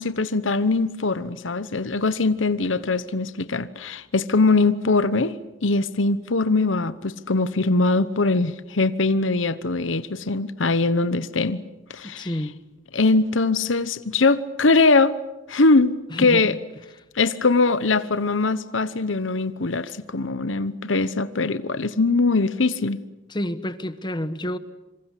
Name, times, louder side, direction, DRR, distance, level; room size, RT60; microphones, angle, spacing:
voice 1, 0.0-5.3 5.6-11.6 11.9-12.3 12.9-15.2 15.5-16.5 17.1-23.0, left 3 dB, 85° left, 1.0 m, -21 dB
voice 2, 12.0-12.6 16.1-16.6 23.3-24.6, equal, 25° left, 1.3 m, -29 dB
26.5 x 25.5 x 8.4 m
head